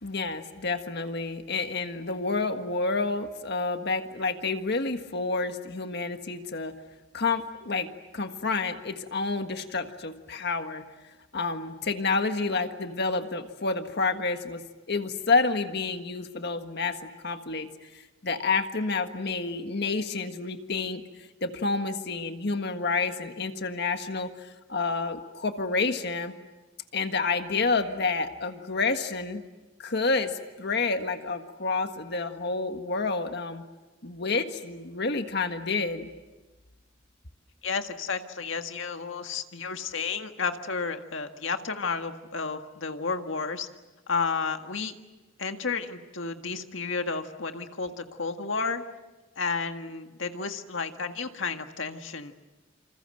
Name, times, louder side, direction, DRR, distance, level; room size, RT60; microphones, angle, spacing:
voice 1, 0.0-6.7 7.1-10.8 11.3-14.6 14.9-17.7 17.9-21.0 21.4-26.3 26.9-29.4 29.8-33.6 34.0-36.1, left 4 dB, 55° left, 7 dB, 1.6 m, -29 dB
voice 2, 37.6-43.7 44.1-44.9 45.4-48.8 49.4-52.3, left 4 dB, 75° left, 6 dB, 1.8 m, -32 dB
28.0 x 27.0 x 7.9 m, 1.1 s
head